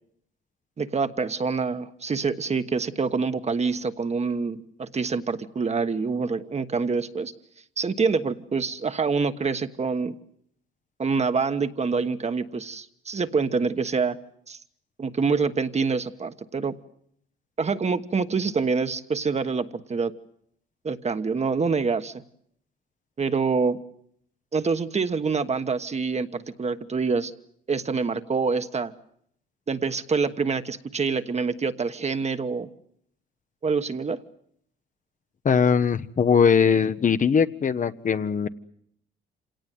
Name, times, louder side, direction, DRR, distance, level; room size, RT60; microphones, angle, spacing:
voice 1, 0.8-7.3 7.8-10.1 11.0-14.2 14.5-14.6 15.0-16.8 17.6-20.1 20.8-22.2 23.2-23.8 24.5-27.3 27.7-28.9 29.7-32.7 33.6-34.2, right 4 dB, 35° right, 9 dB, 1.3 m, -26 dB
voice 2, 35.4-38.5, left 6 dB, 40° left, 11 dB, 1.0 m, -21 dB
26.5 x 18.0 x 9.3 m, 0.69 s
cardioid pair, 90°, 20 cm